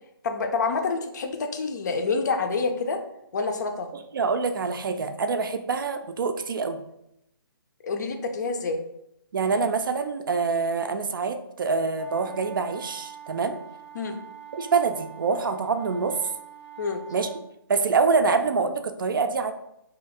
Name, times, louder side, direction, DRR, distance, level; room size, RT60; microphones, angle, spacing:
voice 1, 0.2-3.0 3.3-3.9 7.8-8.8 13.9-14.2 16.8-17.0, left 4 dB, 45° left, 5 dB, 0.5 m, -27 dB
voice 2, 4.1-6.8 9.3-13.6 14.5-16.2 17.1-17.3 17.7-19.5, right 4 dB, 60° right, 8 dB, 0.4 m, -25 dB
sound 1, 11.9-17.4, right 9 dB, 90° left, 0.7 m, -44 dB
2.8 x 2.5 x 4.1 m, 0.80 s
hypercardioid pair, 155°, 13 cm